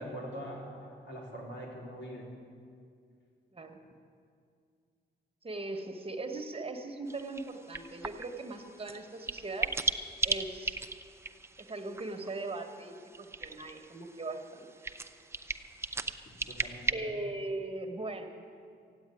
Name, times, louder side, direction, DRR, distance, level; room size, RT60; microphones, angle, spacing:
voice 1, 0.0-2.3 16.5-17.1, equal, 75° left, -3 dB, 4.0 m, -43 dB
voice 2, 5.4-9.9 10.2-10.8 11.6-14.7 16.9-18.3, right 2 dB, 30° right, 4 dB, 1.2 m, -39 dB
sound 1, 7.1-16.9, right 3 dB, 15° right, 0.5 m, -38 dB
14.5 x 8.8 x 9.7 m, 2.3 s
wide cardioid pair, 115°, 18 cm